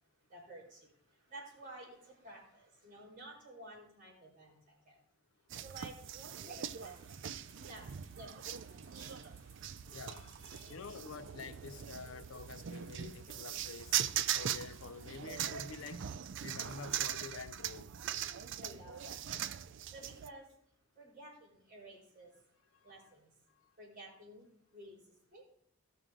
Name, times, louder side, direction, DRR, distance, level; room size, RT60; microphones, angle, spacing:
voice 1, 0.3-0.9 1.3-4.6 4.8-5.0 5.6-7.9 8.1-8.6 8.9-9.3 18.5-19.2 19.9-20.5 21.0-22.3 22.8-23.3 23.8-24.5 24.7-25.0 25.3-25.4, right 1 dB, 40° right, 4.8 m, -53 dB
sound 1, 5.5-20.3, right 10 dB, 60° right, 0.4 m, -40 dB
sound 2, 6.8-15.9, right 3 dB, 75° right, 2.3 m, -61 dB
voice 2, 9.9-13.9 14.3-16.1 16.4-17.9 22.8-22.9 23.6-23.7, left 5 dB, 75° left, 0.5 m, -48 dB
16.0 x 6.3 x 3.8 m
head